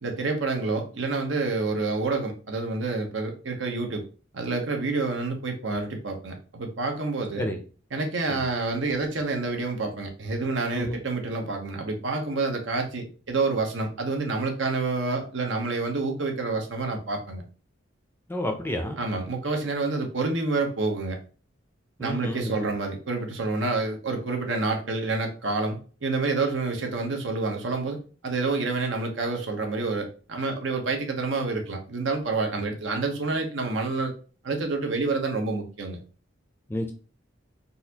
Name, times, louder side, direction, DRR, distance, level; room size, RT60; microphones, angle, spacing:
voice 1, 0.0-4.0 4.3-7.5 7.9-17.4 19.0-21.2 22.0-28.0 28.2-34.1 34.4-36.0, right 3 dB, 75° right, 3 dB, 0.8 m, -28 dB
voice 2, 18.3-19.0 22.0-22.7 36.7-36.9, left 1 dB, 10° left, 4 dB, 0.5 m, -30 dB
4.0 x 2.5 x 2.8 m, 0.37 s
head